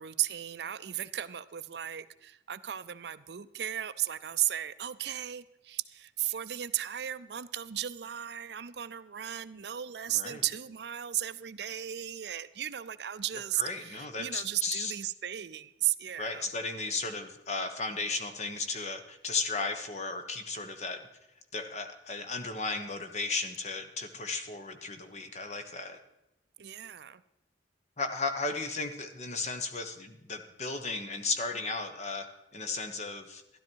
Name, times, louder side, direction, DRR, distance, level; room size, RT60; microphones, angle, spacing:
voice 1, 0.0-16.5 26.6-27.2, right 12 dB, 65° right, 14 dB, 0.5 m, -35 dB
voice 2, 10.1-10.4 13.6-14.9 16.2-21.0 21.5-26.0 28.0-32.3 32.5-33.4, left 3 dB, 40° left, 7 dB, 1.2 m, -35 dB
13.0 x 12.0 x 4.6 m, 0.90 s
head